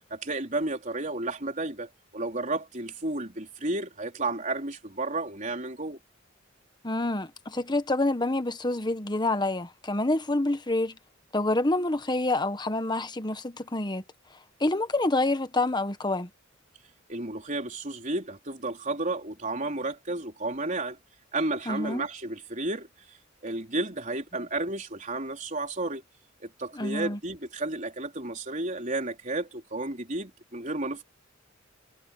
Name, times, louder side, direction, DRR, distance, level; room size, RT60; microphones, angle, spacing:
voice 1, 0.1-6.0 17.1-21.0 21.3-22.9 23.4-26.0 26.4-31.0, right 2 dB, 40° right, 4.1 m, -32 dB
voice 2, 6.8-11.0 11.3-14.0 14.6-16.3 21.7-22.0 26.7-27.2, left 2 dB, 20° left, 1.2 m, -27 dB
head